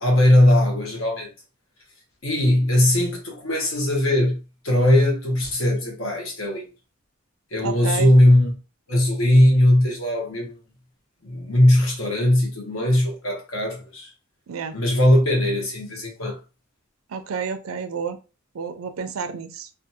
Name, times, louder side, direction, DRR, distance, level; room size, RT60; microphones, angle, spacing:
voice 1, 0.0-1.3 2.2-4.4 4.6-6.7 7.5-8.5 8.9-10.5 11.2-14.1 14.7-16.4, left 1 dB, 75° left, 1.1 m, -19 dB
voice 2, 7.6-8.1 14.5-14.8 17.1-18.2 18.5-19.7, right 5 dB, 80° right, 0.4 m, -30 dB
2.6 x 2.4 x 2.7 m
head